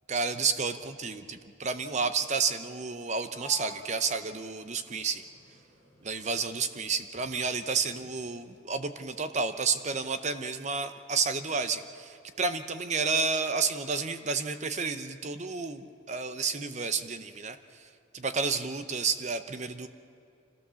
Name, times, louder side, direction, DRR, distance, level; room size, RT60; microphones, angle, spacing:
voice 1, 0.1-5.2 6.0-19.9, right 5 dB, 35° right, 10 dB, 0.8 m, -31 dB
Sliding door, 3.3-6.9 7.1-8.5, right 1 dB, 75° right, 7.2 m, -52 dB
26.0 x 15.5 x 7.0 m, 2.6 s
head